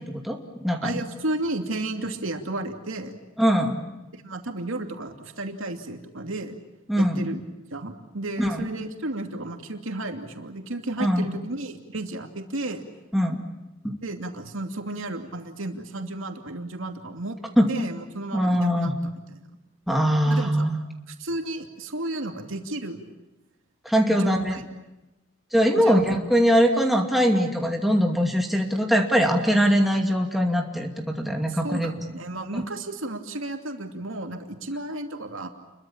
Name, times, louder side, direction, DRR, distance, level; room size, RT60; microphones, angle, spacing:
voice 1, 0.0-1.0 3.4-3.8 6.9-7.3 8.4-8.6 11.0-11.3 13.1-13.4 13.8-14.0 17.6-17.7 18.3-18.9 19.9-20.8 23.8-24.6 25.5-31.9 32.5-32.6, equal, ahead, 1 dB, 2.4 m, -22 dB
voice 2, 0.8-3.2 4.2-6.6 7.0-7.4 7.7-12.8 14.0-17.4 17.7-18.9 20.3-20.7 21.2-23.1 24.1-24.6 25.7-26.0 31.5-35.5, right 2 dB, 80° right, 4 dB, 2.7 m, -33 dB
29.5 x 23.0 x 7.3 m, 1.0 s
head